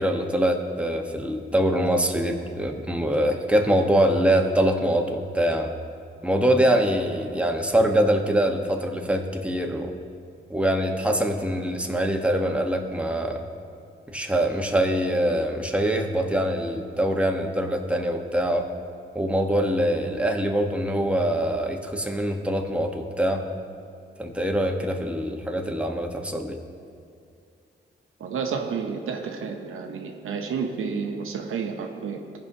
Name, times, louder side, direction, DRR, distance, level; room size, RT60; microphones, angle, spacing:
voice 1, 0.0-5.7 6.2-9.9 10.5-13.4 14.1-18.7 19.1-23.4 24.2-26.6, right 1 dB, 5° right, 2 dB, 1.0 m, -24 dB
voice 2, 28.2-32.2, right 5 dB, 85° right, 4 dB, 0.7 m, -30 dB
15.5 x 5.4 x 2.7 m, 2.3 s
cardioid pair, 50°, 21 cm